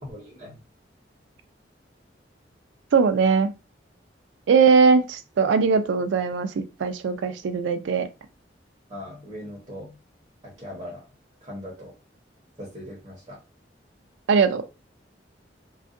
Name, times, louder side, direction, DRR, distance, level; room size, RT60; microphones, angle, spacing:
voice 1, 0.0-0.6 8.9-9.9 10.6-11.0 11.4-11.9 12.6-13.4, left 1 dB, 25° right, 0.9 m, -39 dB
voice 2, 2.9-3.5 4.5-8.1 14.3-14.6, right 5 dB, 85° right, 0.3 m, -20 dB
2.5 x 2.3 x 2.4 m
head